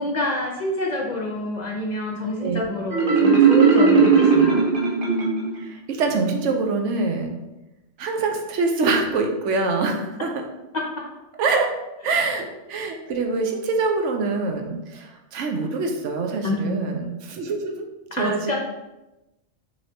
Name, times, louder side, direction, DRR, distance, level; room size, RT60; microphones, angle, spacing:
voice 1, 0.0-4.6 16.4-16.9 18.2-18.6, left 1 dB, 50° left, -1 dB, 0.6 m, -27 dB
Marimba xylophone, 2.9-5.7, right 5 dB, 50° right, 0.9 m, -17 dB
voice 2, 5.6-7.4 8.0-10.3 11.4-11.7 12.0-17.9 18.1-18.5, right 3 dB, 80° right, 3 dB, 1.0 m, -25 dB
5.8 x 3.2 x 2.8 m, 0.99 s
omnidirectional pair, 1.3 m